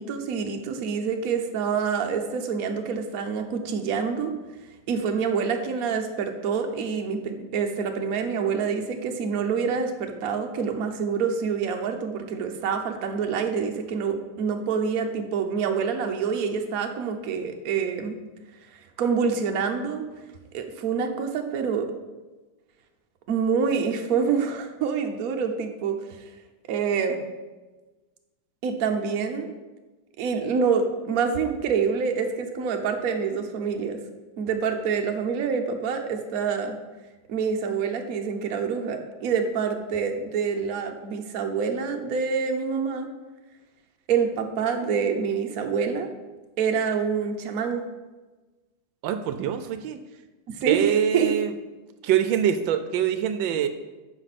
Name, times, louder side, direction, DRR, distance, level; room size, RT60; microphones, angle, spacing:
voice 1, 0.0-4.3 4.9-18.2 19.0-20.0 20.5-21.9 23.3-26.0 26.7-27.2 28.6-29.5 30.2-34.0 34.4-36.8 37.3-43.1 44.1-46.1 46.6-47.8 50.5-51.3, right 6 dB, 60° right, 5 dB, 1.2 m, -26 dB
voice 2, 49.0-50.0 50.6-51.5 52.0-53.7, right 9 dB, 85° right, 9 dB, 1.3 m, -24 dB
9.9 x 6.1 x 4.1 m, 1.2 s
omnidirectional pair, 2.1 m